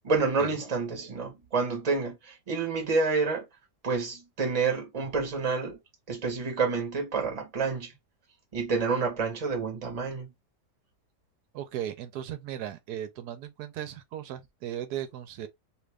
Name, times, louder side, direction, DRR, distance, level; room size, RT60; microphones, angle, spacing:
voice 1, 0.0-3.5 3.8-5.8 6.1-7.9 8.5-10.3, right 4 dB, 25° right, 0.9 m, -28 dB
voice 2, 11.5-15.5, right 11 dB, 70° right, 1.1 m, -37 dB
2.8 x 2.5 x 3.2 m
omnidirectional pair, 1.8 m